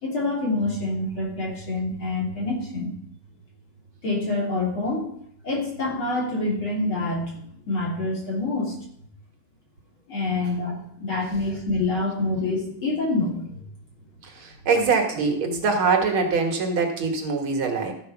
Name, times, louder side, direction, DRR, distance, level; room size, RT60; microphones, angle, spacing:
voice 1, 0.0-2.9 4.0-5.1 5.4-8.8 10.1-13.5, left 2 dB, 65° left, -4 dB, 3.8 m, -26 dB
voice 2, 14.2-17.9, right 4 dB, 70° right, 3 dB, 2.3 m, -23 dB
13.5 x 4.9 x 5.7 m, 0.68 s
omnidirectional pair, 2.4 m